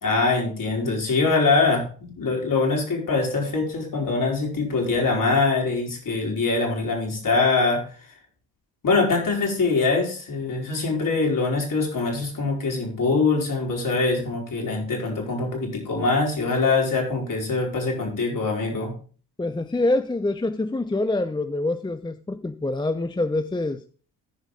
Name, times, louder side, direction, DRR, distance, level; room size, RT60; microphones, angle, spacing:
voice 1, 0.0-7.8 8.8-18.9, left 3 dB, 45° left, 4.0 m, -23 dB
voice 2, 19.4-23.8, left 2 dB, 10° left, 0.6 m, -25 dB
14.5 x 5.2 x 3.8 m
hypercardioid pair, 50°, 43 cm